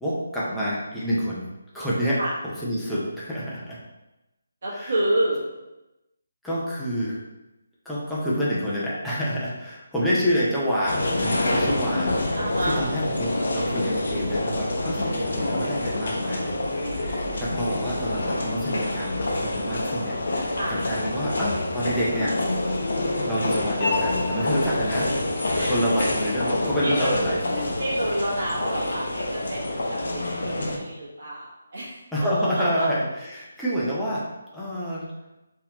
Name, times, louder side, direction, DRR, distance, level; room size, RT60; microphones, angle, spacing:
voice 1, 0.0-1.4 1.7-3.8 4.7-4.9 6.4-7.2 7.8-16.6 16.9-22.3 23.2-25.1 25.6-27.6 32.1-34.2 34.5-35.1, equal, ahead, -10 dB, 0.5 m, -28 dB
voice 2, 4.6-5.4 12.4-12.8 20.5-20.7 25.5-25.7 26.8-27.3 27.8-32.0 32.8-32.9, right 1 dB, 40° right, -6 dB, 1.3 m, -28 dB
sound 1, 10.9-30.8, left 1 dB, 55° left, 0.7 m, -27 dB
3.9 x 2.8 x 2.9 m, 0.98 s
hypercardioid pair, 175°, 0 cm